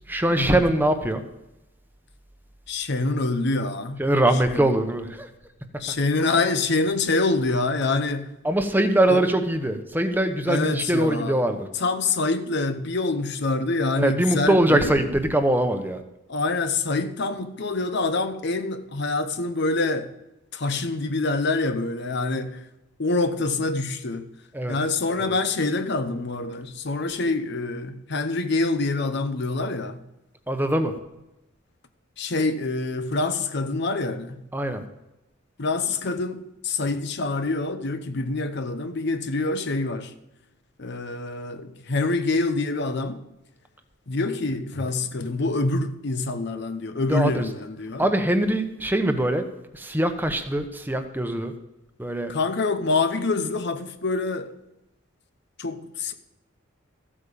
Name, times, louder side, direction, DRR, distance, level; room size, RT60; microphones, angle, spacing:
voice 1, 0.1-1.2 4.0-5.3 8.4-11.7 13.9-16.0 24.5-24.8 25.2-25.3 30.5-30.9 34.5-34.8 47.1-47.4 48.0-49.4 49.7-51.5 52.0-52.3, right 1 dB, 10° right, 1.0 m, -22 dB
voice 2, 2.7-4.0 4.3-4.8 5.8-8.4 9.1-9.2 10.5-11.5 11.7-14.9 16.3-20.1 20.5-22.6 23.0-24.3 24.7-30.0 32.2-34.4 35.6-40.1 40.8-43.2 44.1-48.1 52.3-54.6 55.6-56.1, left 3 dB, 55° left, 0.9 m, -26 dB
14.5 x 8.7 x 6.9 m
head